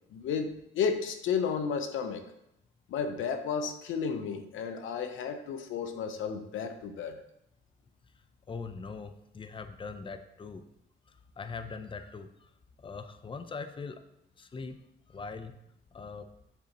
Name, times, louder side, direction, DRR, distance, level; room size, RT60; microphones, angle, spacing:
voice 1, 0.1-2.2 2.9-7.2, left 6 dB, 80° left, 7 dB, 0.8 m, -32 dB
voice 2, 8.5-10.6 11.1-12.5 12.8-14.0 14.4-14.8 15.1-15.5 15.9-16.3, left 4 dB, 25° left, 10 dB, 0.6 m, -41 dB
7.1 x 7.1 x 3.0 m, 0.81 s
cardioid pair, 90°, 20 cm